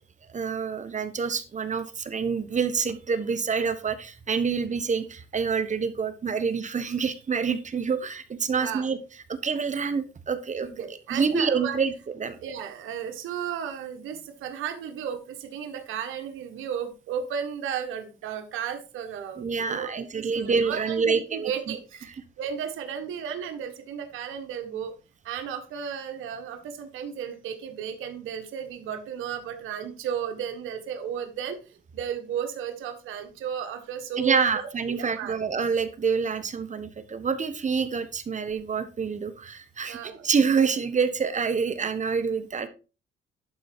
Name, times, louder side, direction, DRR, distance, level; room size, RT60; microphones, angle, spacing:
voice 1, 0.3-9.0 9.3-11.9 12.2-12.4 19.4-21.5 34.2-42.7, right 5 dB, 40° right, 11 dB, 1.3 m, -27 dB
voice 2, 8.5-8.8 10.7-11.8 12.4-24.9 25.2-34.5 34.9-35.3 39.9-40.3, right 8 dB, 85° right, 5 dB, 1.5 m, -34 dB
11.5 x 4.6 x 4.5 m, 0.32 s
cardioid pair, 90°, 20 cm